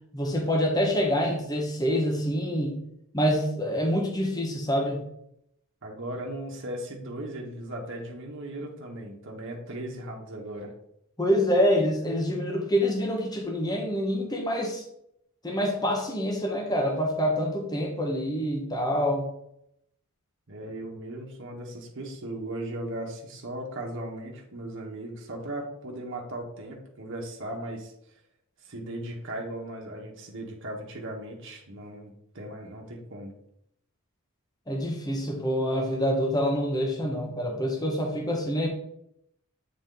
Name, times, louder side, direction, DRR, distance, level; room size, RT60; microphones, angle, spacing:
voice 1, 0.1-2.7 3.1-5.0 11.2-14.8 15.4-19.3 34.7-38.7, equal, 20° left, 1 dB, 1.0 m, -26 dB
voice 2, 5.8-10.7 20.5-27.9 28.6-33.3, right 1 dB, 60° right, 0 dB, 1.3 m, -37 dB
8.6 x 4.0 x 3.9 m, 0.75 s
head